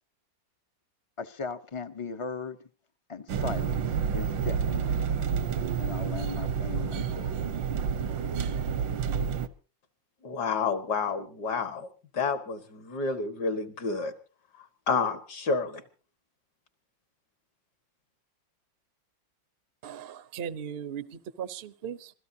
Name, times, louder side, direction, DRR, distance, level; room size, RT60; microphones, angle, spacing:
voice 1, 1.2-2.6 3.1-3.8 4.1-5.0 5.8-7.3, left 5 dB, 30° left, 0.5 m, -37 dB
sound 1, 3.3-9.5, right 7 dB, 80° right, 1.7 m, -29 dB
voice 2, 10.2-11.9 12.1-14.1 14.9-15.8, left 4 dB, 60° left, 2.2 m, -29 dB
voice 3, 19.8-22.1, right 8 dB, 50° right, 0.7 m, -38 dB
26.5 x 17.0 x 2.8 m
omnidirectional pair, 2.0 m